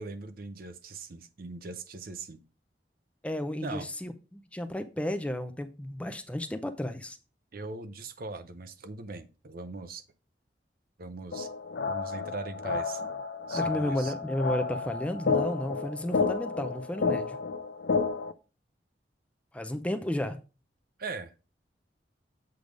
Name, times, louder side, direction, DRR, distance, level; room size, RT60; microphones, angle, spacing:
voice 1, 0.0-2.4 3.6-3.9 7.5-10.0 11.0-11.5 11.9-13.0 13.5-14.1 21.0-21.3, right 3 dB, 55° right, 0.7 m, -40 dB
voice 2, 3.2-7.2 13.5-17.4 19.5-20.4, left 1 dB, 5° left, 0.5 m, -33 dB
sound 1, 11.3-18.3, left 4 dB, 65° left, 0.5 m, -31 dB
7.9 x 3.4 x 5.1 m
head